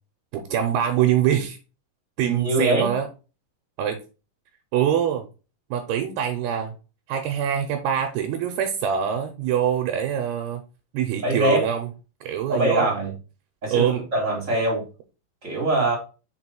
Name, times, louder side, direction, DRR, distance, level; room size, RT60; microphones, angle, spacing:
voice 1, 0.3-1.6 2.2-3.1 3.8-4.0 4.7-5.2 5.7-6.7 7.1-10.6 10.9-11.9 12.2-12.9 13.7-14.0, right 9 dB, 80° right, 2.5 m, -24 dB
voice 2, 2.2-2.9 11.2-11.6 12.5-13.1 13.6-14.8 15.4-16.0, right 1 dB, 30° right, 1.3 m, -23 dB
6.3 x 4.4 x 4.5 m
omnidirectional pair, 5.2 m